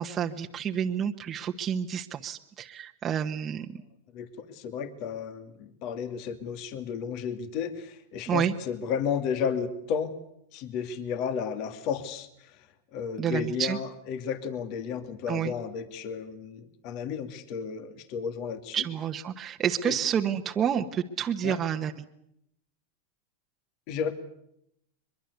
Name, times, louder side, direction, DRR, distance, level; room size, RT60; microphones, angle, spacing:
voice 1, 0.0-3.8 8.3-8.5 13.2-13.8 15.3-15.5 18.7-22.1, right 8 dB, 30° right, 3 dB, 1.2 m, -29 dB
voice 2, 4.1-10.1 10.5-12.6 12.9-18.8 19.8-20.0 21.4-21.6 23.9-24.1, left 7 dB, 50° left, 10 dB, 2.3 m, -33 dB
23.0 x 22.5 x 8.2 m, 0.76 s
supercardioid pair, 125°, 0 cm